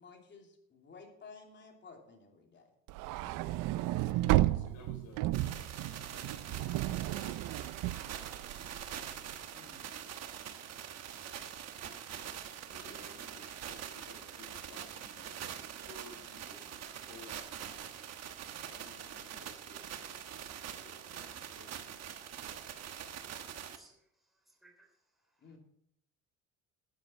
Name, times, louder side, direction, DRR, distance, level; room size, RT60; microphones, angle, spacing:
voice 1, 0.0-2.7 9.5-9.8 25.4-25.6, left 4 dB, 35° left, 2 dB, 2.9 m, -54 dB
sound 1, 2.9-9.2, right 16 dB, 85° right, 0.5 m, -33 dB
voice 2, 3.2-3.7 4.0-7.4 7.7-9.1 12.7-15.5 15.8-18.0 18.5-21.9, left 3 dB, 65° left, 4 dB, 4.1 m, -57 dB
sound 2, 5.3-23.8, right 9 dB, 55° right, 1.2 m, -44 dB
sound 3, 5.9-6.8 8.9-9.3 11.9-12.3 14.9-15.3, left 1 dB, 85° left, 6.1 m, -65 dB
voice 3, 23.6-25.6, right 2 dB, ahead, 0 dB, 3.2 m, -66 dB
12.5 x 9.5 x 4.4 m, 0.71 s
cardioid pair, 125°, 31 cm